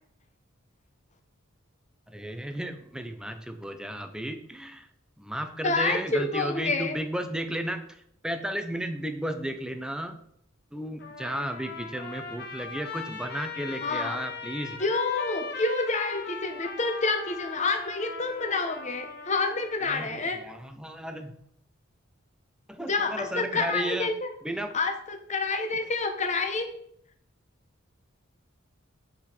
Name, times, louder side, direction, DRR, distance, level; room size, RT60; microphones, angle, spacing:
voice 1, 2.1-4.9 5.2-10.2 10.7-14.8 19.9-21.4 22.7-24.1 24.4-24.7, right 1 dB, 5° right, 7 dB, 0.7 m, -34 dB
voice 2, 5.6-7.0 13.8-14.2 14.8-20.4 22.8-24.3 24.7-26.7, left 3 dB, 35° left, 6 dB, 1.0 m, -28 dB
Trumpet, 11.0-19.8, left 4 dB, 55° left, 1.5 m, -39 dB
8.5 x 5.1 x 4.4 m, 0.69 s
head